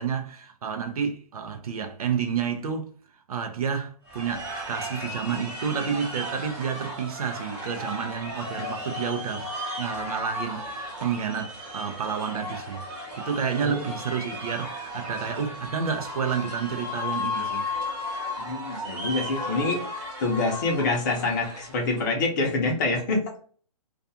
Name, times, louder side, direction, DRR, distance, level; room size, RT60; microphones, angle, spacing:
voice 1, 0.0-2.9 3.3-9.5 9.8-12.8 13.2-17.7, right 7 dB, 65° right, 0.5 m, -30 dB
sound 1, 4.1-22.1, left 1 dB, 30° right, 0.9 m, -35 dB
voice 2, 18.4-23.2, left 3 dB, 30° left, 0.7 m, -26 dB
2.4 x 2.3 x 2.7 m
hypercardioid pair, 160°, 20 cm